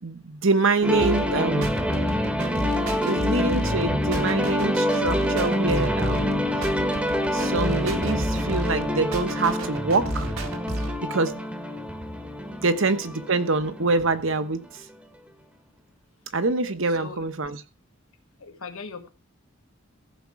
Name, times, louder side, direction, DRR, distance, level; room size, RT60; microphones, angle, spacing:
voice 1, 0.0-1.8 3.0-6.7 7.3-10.3 11.0-11.4 12.6-14.9 16.3-17.6, right 3 dB, 65° right, 1.0 m, -25 dB
sound 1, 0.8-14.6, equal, 5° right, 1.0 m, -26 dB
sound 2, 1.0-11.0, right 1 dB, 85° right, 2.0 m, -32 dB
voice 2, 12.4-12.8 16.9-17.3 18.4-19.1, left 4 dB, 85° left, 1.6 m, -40 dB
14.5 x 6.7 x 4.8 m
head